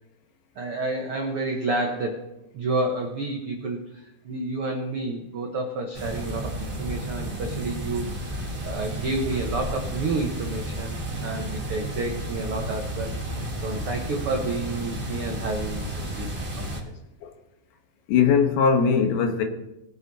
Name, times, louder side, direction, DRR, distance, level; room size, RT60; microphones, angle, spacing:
voice 1, 0.5-2.3 2.5-13.2 13.6-16.3 16.6-16.7, right 2 dB, 80° right, 1.2 m, -30 dB
sound 1, 5.9-16.8, right 1 dB, 25° right, 1.1 m, -32 dB
voice 2, 18.1-19.4, left 6 dB, 90° left, 3.3 m, -20 dB
20.5 x 7.0 x 4.1 m
omnidirectional pair, 4.3 m